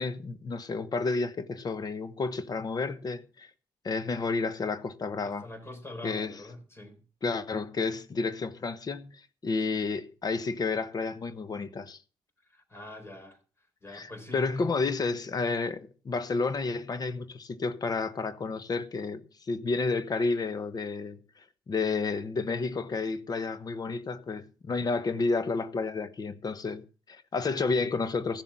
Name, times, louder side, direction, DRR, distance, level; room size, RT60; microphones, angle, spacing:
voice 1, 0.0-3.5 3.8-5.5 6.0-6.4 7.2-12.0 13.9-21.2 21.7-28.4, left 4 dB, 45° left, 1.1 m, -31 dB
voice 2, 5.2-7.0 12.5-13.4 13.8-14.5, left 1 dB, 25° left, 4.3 m, -44 dB
15.0 x 7.3 x 5.8 m
supercardioid pair, 65°, 10 cm